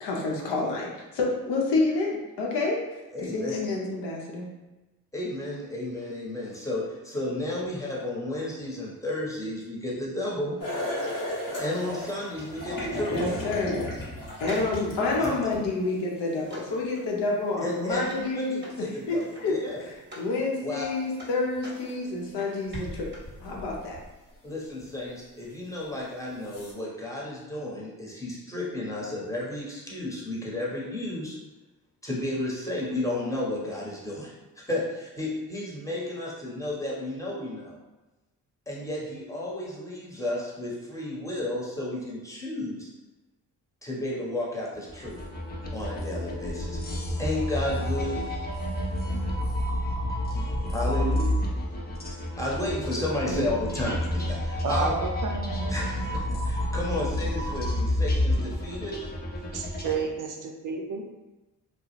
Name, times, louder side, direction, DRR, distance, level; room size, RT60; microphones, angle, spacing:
voice 1, 0.0-2.8 3.2-4.5 13.1-13.9 14.4-19.5 19.9-23.1 23.4-24.0, left 3 dB, 70° left, -2 dB, 0.7 m, -28 dB
voice 2, 3.1-3.6 5.1-10.5 11.6-13.3 15.2-15.4 17.6-19.8 20.6-20.8 24.4-31.4 32.0-37.8 38.7-42.9 43.8-45.2 45.7-46.8 47.2-48.2 50.7-51.2 52.3-54.9 55.7-59.0, left 1 dB, 5° left, -5 dB, 1.0 m, -32 dB
sound 1, 10.6-15.9 17.9-18.0 20.8-20.9 21.7-22.0 22.7-24.3 24.8-24.9 25.8-25.9 26.4-26.7, left 1 dB, 45° left, 1.0 m, -35 dB
sound 2, 14.4-20.4 20.7-23.4 23.6-23.7, equal, 25° right, 0.9 m, -47 dB
sound 3, 44.9-60.0, left 1 dB, 20° left, 0.5 m, -29 dB
voice 3, 54.6-55.7 59.4-60.3 60.6-61.0, right 5 dB, 50° right, 0 dB, 0.5 m, -30 dB
2.3 x 2.0 x 3.1 m, 1.1 s
hypercardioid pair, 40°, 43 cm